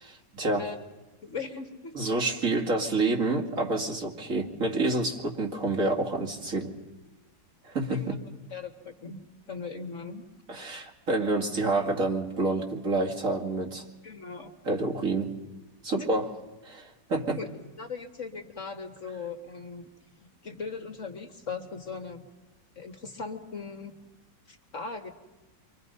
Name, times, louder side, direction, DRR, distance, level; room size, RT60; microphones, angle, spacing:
voice 1, 0.3-0.7 1.9-6.8 7.6-8.2 10.5-13.8 14.6-15.4 15.8-16.3 16.6-17.4, right 2 dB, 45° right, 0 dB, 2.8 m, -28 dB
voice 2, 1.2-1.9 7.9-8.2 8.5-9.2 9.5-10.3 14.0-14.5 16.0-16.1 17.4-17.5 17.8-19.9 20.2-22.3 22.8-23.9 24.5-25.1, left 4 dB, 45° left, 5 dB, 1.7 m, -39 dB
30.0 x 24.5 x 5.5 m, 1.1 s
omnidirectional pair, 1.9 m